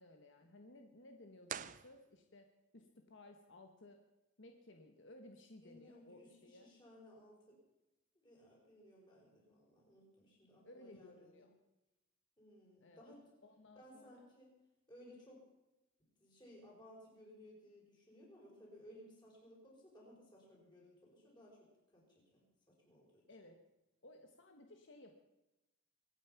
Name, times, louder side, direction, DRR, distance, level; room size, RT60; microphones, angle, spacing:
voice 1, 0.0-4.0 4.4-6.7 10.6-11.6 12.8-13.1 13.4-14.3 23.3-23.6 24.0-25.1, left 2 dB, 60° left, 4 dB, 1.2 m, -59 dB
sound 1, 1.4-2.6, right 8 dB, 35° right, 0.4 m, -47 dB
voice 2, 5.6-7.6 8.2-11.5 12.4-13.2 13.7-14.5 14.9-15.4 16.2-23.3 24.6-24.7, equal, 20° left, -3 dB, 5.5 m, -60 dB
24.0 x 9.2 x 5.9 m, 0.98 s
head